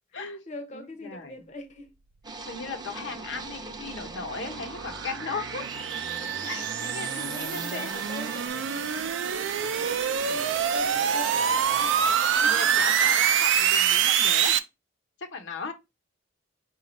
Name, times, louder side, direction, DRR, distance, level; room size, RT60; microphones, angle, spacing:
voice 1, 0.2-1.9 6.4-13.1 13.6-13.7, left 2 dB, 40° left, 0.6 m, -43 dB
voice 2, 0.7-1.4 2.4-5.7 6.5-8.0 10.0-10.1 12.4-14.6 15.2-15.7, left 4 dB, 80° left, 0.9 m, -37 dB
sound 1, 2.2-8.5, right 3 dB, 25° right, 0.5 m, -40 dB
sound 2, 3.3-14.6, right 8 dB, 90° right, 0.4 m, -26 dB
sound 3, 5.6-11.0, right 9 dB, 60° right, 0.7 m, -39 dB
4.9 x 2.4 x 4.1 m
head